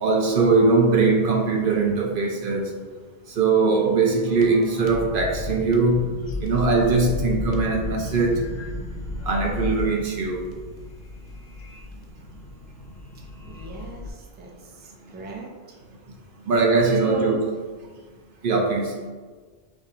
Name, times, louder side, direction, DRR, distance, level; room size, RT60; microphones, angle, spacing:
voice 1, 0.0-2.7 3.3-6.0 6.4-8.4 9.3-10.4 16.5-17.4 18.4-18.9, right 3 dB, 60° right, 1 dB, 0.6 m, -21 dB
sound 1, 4.2-14.1, left 2 dB, 45° left, 0.7 m, -34 dB
voice 2, 11.9-12.3 13.4-15.8 17.0-17.3, right 2 dB, 15° right, -1 dB, 0.4 m, -36 dB
5.8 x 2.3 x 3.9 m, 1.4 s
omnidirectional pair, 1.1 m